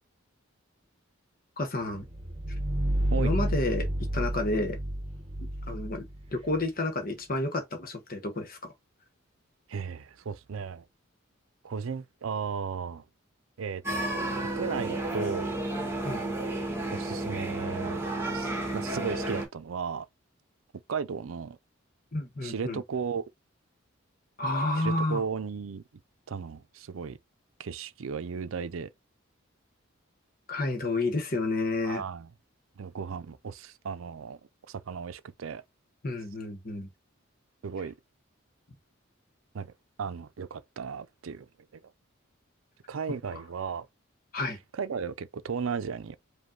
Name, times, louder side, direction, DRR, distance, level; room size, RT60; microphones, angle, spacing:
voice 1, 1.6-2.1 3.2-4.8 5.4-6.1 6.3-8.7 16.0-16.4 22.1-22.8 24.4-25.2 30.5-32.0 36.0-36.9 44.3-44.6, left 2 dB, 45° left, 1.1 m, -30 dB
Hell's Foundation D, 2.0-6.6, right 1 dB, 30° right, 1.0 m, -30 dB
voice 2, 9.7-10.8 11.6-13.0 13.6-14.1 14.4-15.5 16.9-18.0 18.3-20.1 20.9-21.6 22.4-23.2 24.7-25.8 26.3-27.2 27.6-28.9 31.8-32.3 32.8-34.4 34.7-35.6 37.6-37.9 39.5-39.7 40.0-41.5 41.7-41.8 42.9-43.9 44.7-46.2, right 6 dB, 85° right, 0.5 m, -35 dB
sound 1, 13.8-19.5, right 1 dB, 10° right, 1.4 m, -32 dB
5.2 x 2.3 x 3.8 m
head